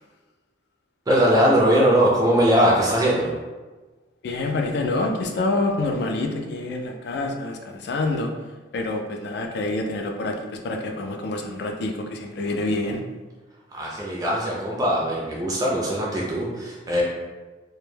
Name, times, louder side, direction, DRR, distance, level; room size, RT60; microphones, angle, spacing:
voice 1, 1.1-3.3 13.7-17.0, equal, 20° right, -4 dB, 0.4 m, -20 dB
voice 2, 4.2-8.3 8.7-13.0, left 2 dB, 60° left, 3 dB, 0.3 m, -27 dB
2.1 x 2.1 x 3.1 m, 1.2 s
head